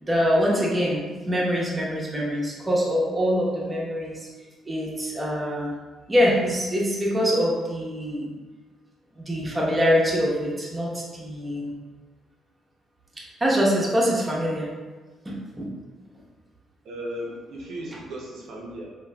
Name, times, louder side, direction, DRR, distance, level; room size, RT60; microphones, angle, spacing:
voice 1, 0.0-4.3 4.7-5.7 6.1-8.3 9.1-11.7 13.4-14.7 15.2-15.7, equal, 20° right, -4 dB, 0.8 m, -24 dB
voice 2, 16.8-18.9, equal, 75° right, -3 dB, 0.6 m, -36 dB
3.7 x 2.6 x 2.2 m, 1.3 s
cardioid pair, 90°, 0 cm